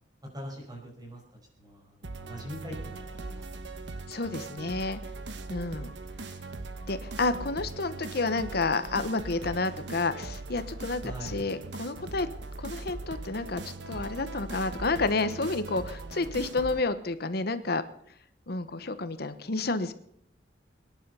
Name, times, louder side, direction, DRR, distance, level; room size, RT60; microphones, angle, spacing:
voice 1, 0.3-1.2 1.6-3.9 11.0-11.4, equal, 20° right, 0 dB, 5.2 m, -43 dB
sound 1, 2.0-16.8, right 3 dB, 75° right, 1.2 m, -40 dB
voice 2, 4.1-5.0 5.5-5.9 6.9-12.3 12.6-17.8 18.5-19.9, left 3 dB, 60° left, 11 dB, 1.1 m, -30 dB
23.0 x 10.5 x 5.6 m, 0.66 s
head